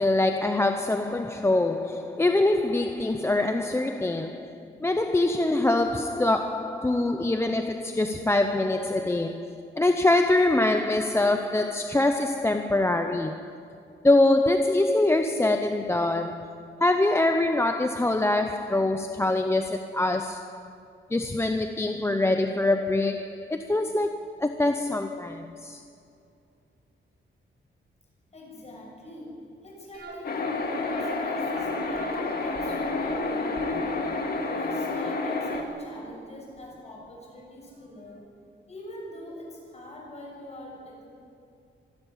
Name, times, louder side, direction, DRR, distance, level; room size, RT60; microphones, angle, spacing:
voice 1, 0.0-13.6 14.0-20.7 21.1-25.8, left 2 dB, 15° left, 0.7 m, -24 dB
voice 2, 28.3-34.1 34.5-38.3 38.7-41.1, left 1 dB, 35° left, 7.0 m, -44 dB
sound 1, 29.9-36.8 37.1-37.2 37.7-37.9 38.2-38.3, right 2 dB, 55° right, 5.7 m, -42 dB
sound 2, 30.2-35.6, left 3 dB, 50° left, 2.2 m, -29 dB
25.0 x 12.0 x 10.0 m
wide cardioid pair, 160°, 20 cm